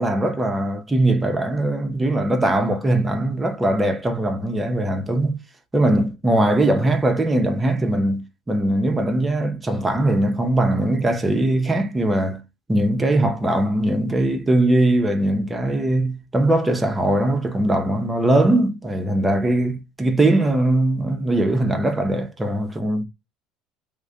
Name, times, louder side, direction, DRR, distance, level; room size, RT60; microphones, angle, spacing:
voice 1, 0.0-5.4 5.7-12.4 12.7-23.0, right 1 dB, 20° right, 0.7 m, -20 dB
2.4 x 2.1 x 3.7 m
hypercardioid pair, 65°, 0 cm